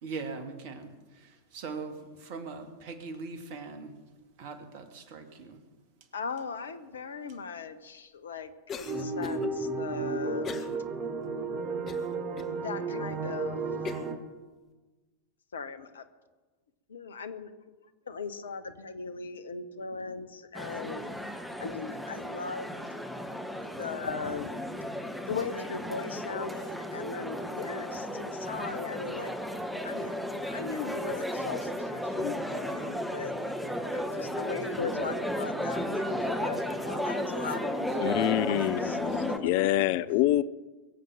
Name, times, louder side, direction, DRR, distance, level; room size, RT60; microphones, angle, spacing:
voice 1, 0.0-3.9 4.4-5.6, right 4 dB, 45° right, 7 dB, 2.0 m, -41 dB
voice 2, 6.1-10.6 12.6-13.6 15.5-16.0 16.9-17.7 18.1-21.1 21.6-22.8 23.6-24.5 25.3-29.3 29.8-33.3 33.9-39.4, left 5 dB, 70° left, 12 dB, 1.2 m, -38 dB
Cough, 8.7-9.5 10.4-10.8 11.2-11.3 11.9-12.5 13.1-13.2 13.8-14.2, left 6 dB, 25° left, 1.4 m, -40 dB
sound 1, 8.8-14.2, right 3 dB, 25° right, 1.8 m, -33 dB
sound 2, 20.5-39.4, equal, ahead, 1.5 m, -34 dB
voice 3, 38.0-40.4, left 15 dB, 45° left, 16 dB, 0.5 m, -26 dB
22.5 x 7.7 x 7.2 m, 1.2 s
figure-of-eight pair, 90°, 0 cm